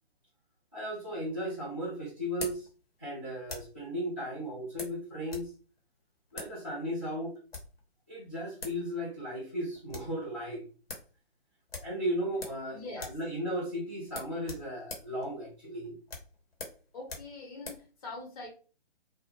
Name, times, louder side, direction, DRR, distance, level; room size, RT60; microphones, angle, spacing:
voice 1, 0.7-2.7 3.0-5.5 6.3-7.3 8.1-10.6 11.8-15.9, equal, 15° left, -11 dB, 0.3 m, -35 dB
sound 1, 0.9-3.8 4.8-5.5 5.8-5.9 6.3-6.6 7.3-7.8 8.3-8.4 8.6-8.8 9.1-9.2 9.6-10.2 10.5-10.6 10.9-11.1 11.7-12.7 12.9-13.3 13.5-13.7 14.1-17.9, left 3 dB, 65° left, 1.0 m, -44 dB
voice 2, 12.7-13.2 16.9-18.5, left 2 dB, 35° left, -1 dB, 0.9 m, -43 dB
2.1 x 2.1 x 3.0 m, 0.36 s
figure-of-eight pair, 135°, 32 cm